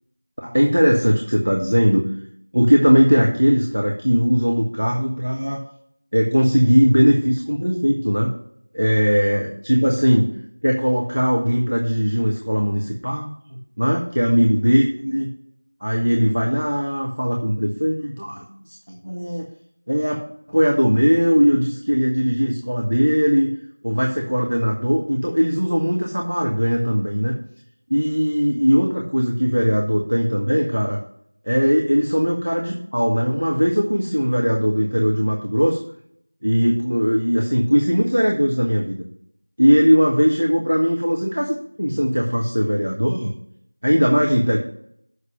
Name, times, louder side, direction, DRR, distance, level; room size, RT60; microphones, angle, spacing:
voice 1, 0.4-2.1 2.5-5.6 6.1-8.3 8.7-10.3 10.6-15.3 15.8-19.5 19.9-20.2 20.5-23.5 23.8-27.4 27.9-31.0 31.4-35.8 36.4-39.0 39.6-43.3 43.8-44.6, equal, 60° right, 0 dB, 1.4 m, -19 dB
7.3 x 6.5 x 5.9 m, 0.69 s
figure-of-eight pair, 180°, 0 cm